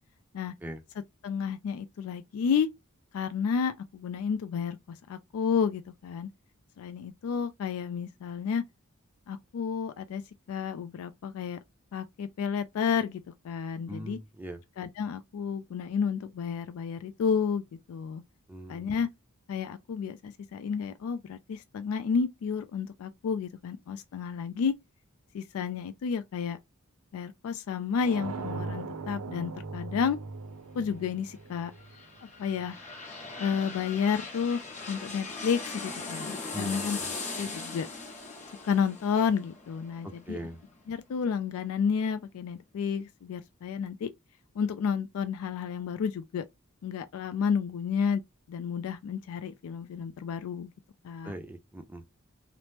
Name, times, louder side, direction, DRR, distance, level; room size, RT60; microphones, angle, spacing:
voice 1, 1.2-2.7 3.1-6.3 6.8-8.6 9.3-10.2 10.5-11.6 11.9-14.2 14.8-18.2 18.7-19.1 19.5-24.7 25.3-26.6 27.1-30.2 30.8-31.7 32.4-32.8 33.4-37.0 37.4-37.9 38.6-40.4 40.9-44.1 44.6-46.4 46.8-48.2 48.5-50.7 51.0-51.3, left 6 dB, 75° left, 0.3 m, -31 dB
voice 2, 13.9-14.6 18.5-18.9 36.5-37.1 40.0-40.6 51.2-52.0, right 1 dB, 10° right, 0.4 m, -41 dB
sound 1, 28.0-32.7, right 4 dB, 85° right, 0.5 m, -39 dB
sound 2, 31.5-41.2 41.6-41.7, left 3 dB, 35° left, 0.9 m, -40 dB
2.9 x 2.0 x 3.2 m
head